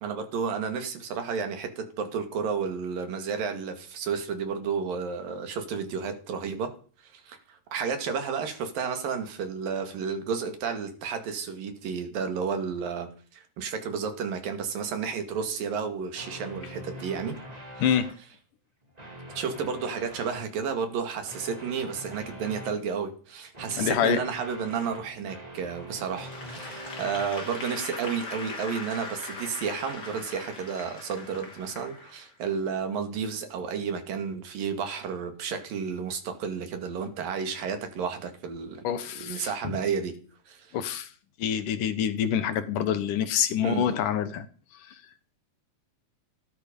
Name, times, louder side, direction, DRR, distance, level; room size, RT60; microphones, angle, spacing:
voice 1, 0.0-6.7 7.0-17.4 17.8-17.9 19.4-38.9 39.1-40.2 40.5-40.8 43.6-43.9, right 6 dB, 75° right, 7 dB, 4.0 m, -32 dB
sound 1, 16.1-18.1 18.8-20.4 21.2-22.8 23.5-27.3, equal, 10° right, 3.0 m, -43 dB
voice 2, 23.8-24.2 38.8-39.5 40.7-41.1 41.4-44.5, left 9 dB, 70° left, 13 dB, 2.6 m, -26 dB
Applause / Crowd, 26.2-32.6, left 3 dB, 30° left, 3.2 m, -40 dB
18.5 x 13.0 x 5.4 m, 0.39 s
omnidirectional pair, 4.0 m